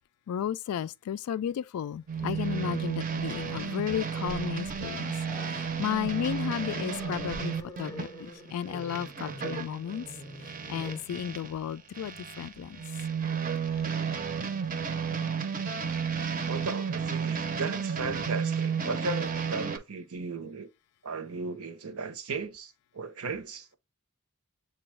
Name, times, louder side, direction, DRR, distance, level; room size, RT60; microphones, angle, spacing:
voice 1, 0.3-5.1 5.5-10.1 10.7-12.8, left 9 dB, 80° left, 0.3 m, -33 dB
Growling, 2.1-11.2 12.5-12.7 13.1-14.3, left 1 dB, 20° left, 0.6 m, -46 dB
sound 1, 2.1-11.5 11.9-19.8, right 6 dB, 40° right, 0.6 m, -33 dB
voice 2, 16.5-20.7 21.0-23.8, right 4 dB, 75° right, 0.8 m, -36 dB
6.8 x 2.3 x 3.1 m
head